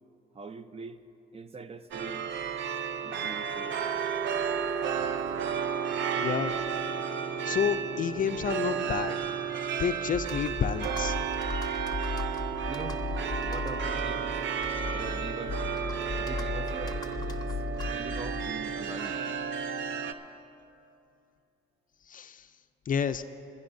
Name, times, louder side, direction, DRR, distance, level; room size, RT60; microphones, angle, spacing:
voice 1, 0.3-1.0 1.3-2.3 3.0-3.8 12.7-13.0 13.4-14.4 14.9-15.6 16.2-17.0 17.9-19.2, right 4 dB, 30° right, 11 dB, 0.6 m, -42 dB
sound 1, 1.9-20.1, right 7 dB, 70° right, 0.6 m, -32 dB
voice 2, 6.2-6.6 7.5-9.2 9.8-11.1 22.1-22.5 22.9-23.2, left 8 dB, 45° left, 10 dB, 0.4 m, -30 dB
Computer keyboard, 10.1-18.7, left 4 dB, 20° left, 0.8 m, -36 dB
29.0 x 11.0 x 2.6 m, 2.8 s
cardioid pair, 90°, 20 cm